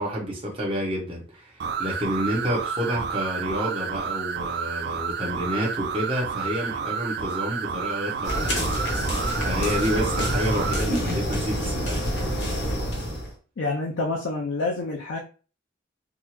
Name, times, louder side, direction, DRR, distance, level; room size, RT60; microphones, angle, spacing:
voice 1, 0.0-8.7 9.4-12.1, equal, 30° right, 1.1 m, -29 dB
sound 1, 1.6-10.9, right 6 dB, 60° right, 0.3 m, -30 dB
sound 2, 8.2-13.3, equal, 65° left, 1.1 m, -27 dB
voice 2, 13.6-15.2, left 3 dB, 80° left, 0.5 m, -27 dB
3.5 x 2.1 x 3.0 m
head